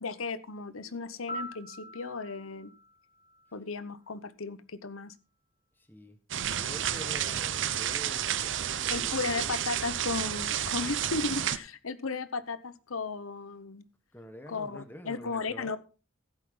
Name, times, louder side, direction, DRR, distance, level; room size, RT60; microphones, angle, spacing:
voice 1, 0.0-2.7 3.5-5.1 8.9-13.8 14.5-15.8, left 4 dB, 90° left, 14 dB, 0.9 m, -35 dB
Piano, 1.3-4.2 12.4-12.6, equal, 45° left, 3.2 m, -44 dB
voice 2, 5.8-6.2 6.5-9.8 14.1-15.8, equal, 10° left, 7 dB, 1.4 m, -47 dB
sound 1, 6.3-11.6, right 10 dB, 65° right, 0.7 m, -31 dB
15.0 x 8.6 x 3.8 m, 0.33 s
head